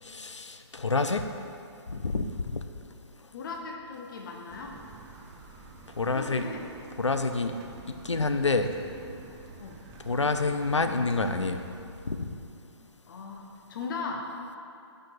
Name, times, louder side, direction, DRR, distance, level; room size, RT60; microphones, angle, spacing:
voice 1, 0.0-1.2 1.9-2.6 6.0-6.4 7.0-7.5 7.9-8.7 10.0-11.6 12.1-12.3, left 3 dB, 85° left, 7 dB, 0.4 m, -28 dB
voice 2, 3.3-4.8 6.1-6.7 9.6-9.8 13.1-14.3, left 4 dB, 45° left, 2 dB, 0.7 m, -38 dB
sound 1, 4.5-11.8, right 4 dB, 20° right, 0.5 m, -48 dB
6.1 x 4.8 x 4.8 m, 2.6 s
figure-of-eight pair, 125°, 15 cm